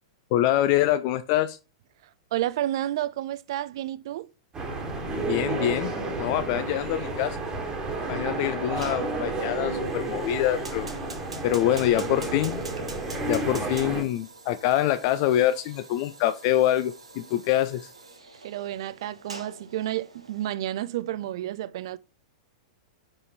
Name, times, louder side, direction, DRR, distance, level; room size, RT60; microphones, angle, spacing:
voice 1, 0.3-1.6 5.2-5.9 6.2-7.4 8.1-10.9 11.4-12.6 13.2-17.9, left 13 dB, 40° left, 0.4 m, -25 dB
voice 2, 2.3-4.3 18.4-22.0, right 13 dB, 50° right, 0.4 m, -30 dB
sound 1, 4.5-14.0, right 2 dB, 20° right, 1.5 m, -31 dB
Fire, 8.8-20.4, right 3 dB, 75° right, 1.2 m, -45 dB
5.4 x 5.2 x 4.2 m
figure-of-eight pair, 100°, 3 cm